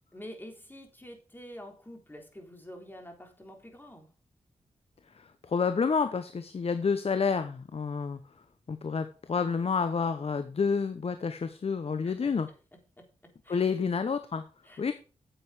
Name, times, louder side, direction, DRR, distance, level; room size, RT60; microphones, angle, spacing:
voice 1, 0.1-4.1 12.0-12.3 13.0-13.1 13.4-13.6 14.6-14.9, equal, 15° left, 3 dB, 3.5 m, -47 dB
voice 2, 5.1-8.2 8.7-12.5 13.5-14.4 14.8-14.9, left 5 dB, 55° left, 10 dB, 0.9 m, -29 dB
9.0 x 7.8 x 4.9 m, 0.35 s
cardioid pair, 55°, 13 cm